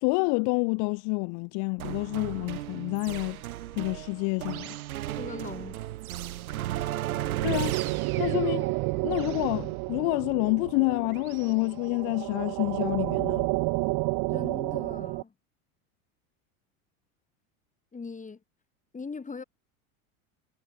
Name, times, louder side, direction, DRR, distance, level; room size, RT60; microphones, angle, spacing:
voice 1, 0.0-3.4 3.8-4.8 7.4-7.8 8.2-8.7 9.0-13.5, left 37 dB, 60° left, 1.2 m, -28 dB
sound 1, 1.8-11.5, right 14 dB, 85° right, 2.6 m, -36 dB
voice 2, 5.2-5.8 14.3-15.3 17.9-18.4 18.9-19.4, left 4 dB, 20° left, 7.1 m, -40 dB
sound 2, 6.4-15.2, right 27 dB, 55° right, 2.3 m, -31 dB
hypercardioid pair, 100°, 42 cm